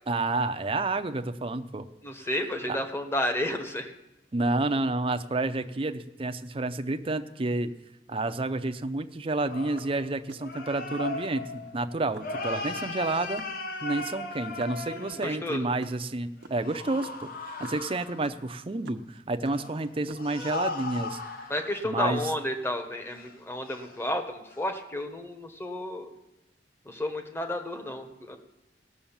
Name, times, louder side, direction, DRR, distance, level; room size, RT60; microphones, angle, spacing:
voice 1, 0.1-1.9 2.7-2.8 4.3-7.7 8.1-13.4 13.8-21.2 21.8-22.2, right 2 dB, 30° right, 9 dB, 0.6 m, -30 dB
voice 2, 2.0-3.9 14.9-15.6 21.5-26.1 26.8-28.4, left 1 dB, 15° left, 6 dB, 1.1 m, -32 dB
sound 1, 9.5-15.5 16.6-18.4 19.5-21.9 22.3-22.4 23.1-23.3 23.7-24.1 24.5-24.7, left 3 dB, 55° left, 1.0 m, -37 dB
sound 2, 9.8-11.1 11.5-11.8 12.1-16.0 16.2-19.2 19.4-20.4, right 3 dB, 85° right, 0.8 m, -49 dB
17.5 x 6.3 x 7.2 m, 0.97 s
head